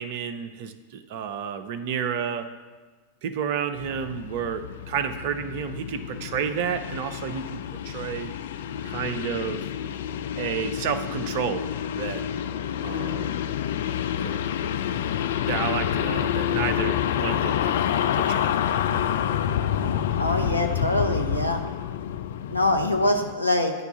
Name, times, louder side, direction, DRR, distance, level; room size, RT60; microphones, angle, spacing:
voice 1, 0.0-2.5 3.2-8.3 8.8-9.6 10.4-11.7 11.9-12.2 12.8-13.4 14.2-14.4 15.5-17.9 18.1-18.5, right 7 dB, 50° right, 10 dB, 0.6 m, -31 dB
sound 1, 3.7-23.3, left 10 dB, 60° left, 0.3 m, -28 dB
voice 2, 20.2-21.6 22.5-23.7, left 1 dB, 85° left, 3 dB, 0.7 m, -24 dB
10.0 x 3.5 x 6.9 m, 1.4 s
figure-of-eight pair, 90°, 0 cm